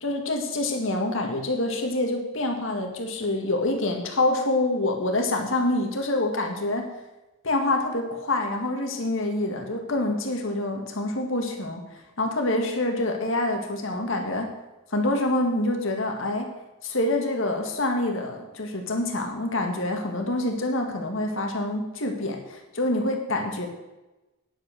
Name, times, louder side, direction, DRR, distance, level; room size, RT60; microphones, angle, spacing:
voice 1, 0.0-6.9 7.4-11.8 12.2-14.5 14.9-16.5 16.8-23.7, left 2 dB, 70° left, 3 dB, 2.0 m, -26 dB
10.0 x 8.3 x 6.7 m, 1.0 s
head